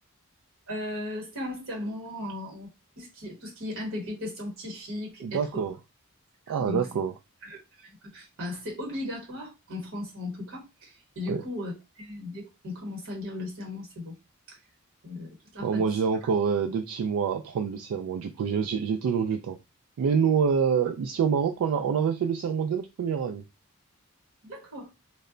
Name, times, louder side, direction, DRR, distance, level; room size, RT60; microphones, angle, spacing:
voice 1, 0.7-2.7 3.0-5.6 6.5-6.9 7.4-14.1 14.5-14.6 15.0-15.8 24.4-24.9, left 1 dB, 60° right, 1.1 m, -37 dB
voice 2, 5.2-5.8 6.5-7.1 11.3-11.4 15.6-19.6 20.0-23.4, right 6 dB, 85° right, 0.3 m, -26 dB
2.1 x 2.0 x 3.6 m
head